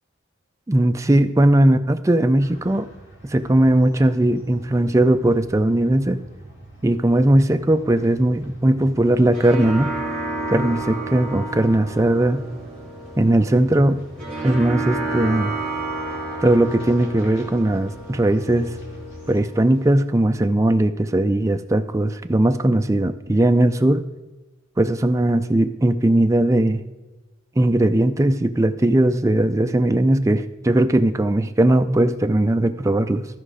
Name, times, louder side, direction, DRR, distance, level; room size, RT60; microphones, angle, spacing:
voice 1, 0.7-2.9 3.2-6.2 6.8-9.9 10.5-12.4 13.2-14.0 14.4-15.5 16.4-18.7 19.3-24.0 24.8-26.8 27.6-33.3, right 1 dB, 15° right, 7 dB, 0.4 m, -18 dB
sound 1, 2.4-19.4, equal, 55° left, 2.3 m, -44 dB
sound 2, 9.0-20.0, right 2 dB, 5° left, 2.4 m, -31 dB
14.0 x 5.0 x 4.9 m, 1.2 s
head